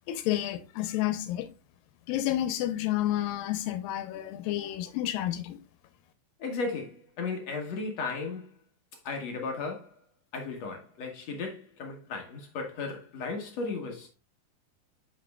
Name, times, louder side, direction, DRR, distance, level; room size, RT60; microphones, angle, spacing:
voice 1, 0.1-1.5 2.1-5.6, left 13 dB, 85° left, 2.5 m, -30 dB
voice 2, 6.4-8.5 9.0-9.9 10.3-14.1, left 4 dB, 60° left, 1.9 m, -35 dB
7.5 x 6.3 x 2.3 m
omnidirectional pair, 4.0 m